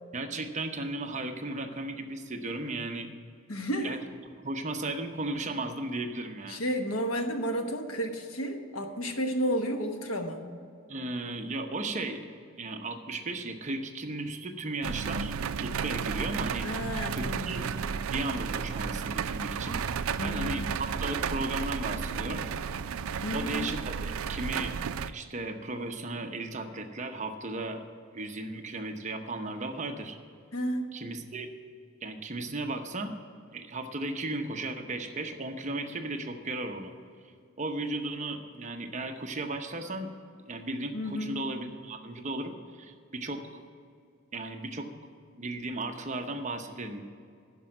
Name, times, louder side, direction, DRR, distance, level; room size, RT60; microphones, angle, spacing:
voice 1, 0.1-3.1 3.8-4.0 4.2-6.6 10.9-12.2 12.5-15.3 15.6-16.7 17.1-17.7 18.1-22.4 23.3-24.7 25.1-27.8 28.1-30.2 30.9-31.5 32.0-33.1 33.5-36.9 37.6-40.1 40.4-43.6 44.3-44.9 45.3-47.0, right 2 dB, 35° right, 5 dB, 0.8 m, -35 dB
voice 2, 3.5-4.0 6.5-10.4 16.6-17.6 20.2-20.7 23.2-23.7 30.5-30.9 40.9-41.4, equal, 75° left, 5 dB, 1.2 m, -32 dB
sound 1, 14.8-25.1, right 6 dB, 75° right, 0.4 m, -33 dB
12.0 x 5.3 x 8.9 m, 2.3 s
head